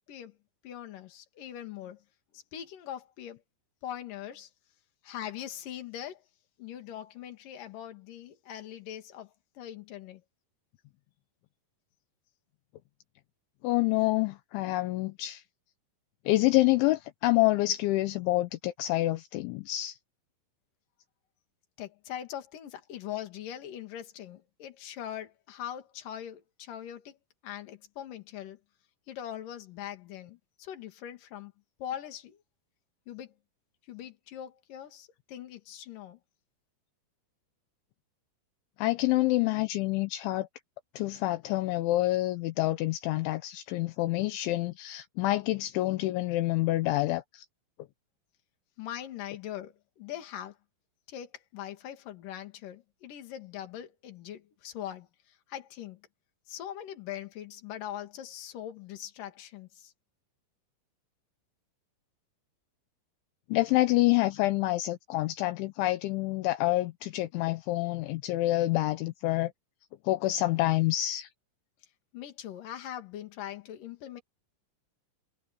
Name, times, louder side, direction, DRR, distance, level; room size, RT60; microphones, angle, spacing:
voice 1, 0.6-2.0 2.3-3.4 3.8-4.5 5.0-6.2 6.6-10.2 21.8-27.2 27.4-28.6 29.1-31.5 31.8-32.4 33.1-33.4 33.9-36.2 48.8-50.6 51.1-56.0 56.5-59.9 72.1-74.2, left 11 dB, 50° left, 3.3 m, -41 dB
voice 2, 13.6-15.4 16.3-20.0 38.8-40.5 41.0-47.4 63.5-69.5 70.1-71.3, left 18 dB, 80° left, 3.1 m, -27 dB
omnidirectional pair, 5.6 m